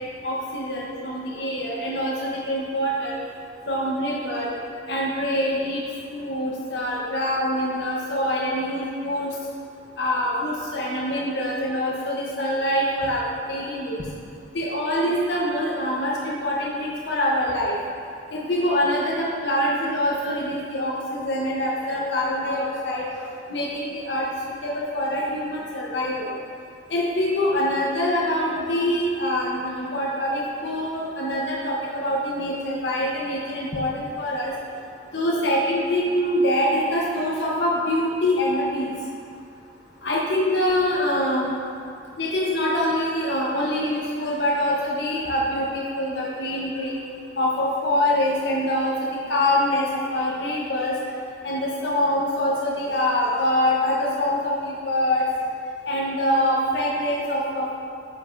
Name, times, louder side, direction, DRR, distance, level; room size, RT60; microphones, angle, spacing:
voice 1, 0.2-3.1 3.7-4.5 4.9-5.8 6.1-9.3 10.0-14.0 14.5-17.8 18.3-23.0 23.5-24.2 24.6-26.3 26.9-34.5 35.1-38.9 40.0-41.5 42.2-46.9 47.4-48.9 49.3-49.9 50.1-50.9 51.4-55.2 55.9-57.7, left 1 dB, 65° left, -4 dB, 0.9 m, -24 dB
9.4 x 6.5 x 2.6 m, 2.4 s
head